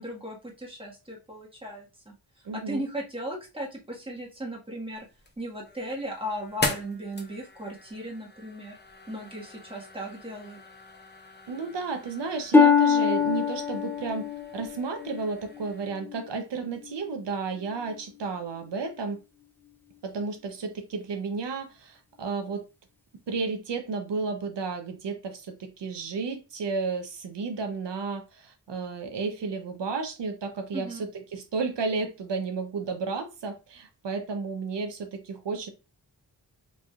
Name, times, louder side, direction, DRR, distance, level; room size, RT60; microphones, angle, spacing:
voice 1, 0.0-2.1 2.5-5.1 5.4-8.8 9.1-10.6 30.7-31.0, right 1 dB, 15° right, 1.5 m, -37 dB
voice 2, 2.4-2.9 11.5-19.2 20.0-22.6 23.3-35.7, right 4 dB, 80° right, 0.8 m, -32 dB
sound 1, 4.9-15.9, left 2 dB, 25° left, 0.9 m, -40 dB
Harp, 12.5-16.3 16.8-17.2 17.9-18.0, left 6 dB, 5° left, 0.5 m, -24 dB
4.9 x 3.4 x 2.3 m
wide cardioid pair, 85°, 41 cm